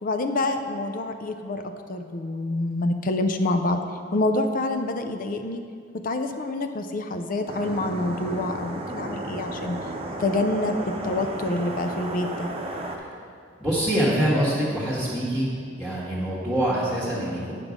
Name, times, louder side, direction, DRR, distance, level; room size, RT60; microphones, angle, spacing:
voice 1, 0.0-1.6 1.9-3.8 4.1-5.6 6.0-9.8 10.2-12.5, left 2 dB, 45° left, 7 dB, 0.5 m, -27 dB
sound 1, 7.5-13.0, right 1 dB, 35° right, 0.8 m, -33 dB
voice 2, 13.6-15.5 15.8-17.5, right 1 dB, ahead, -9 dB, 1.5 m, -24 dB
9.1 x 6.0 x 5.1 m, 2.3 s
head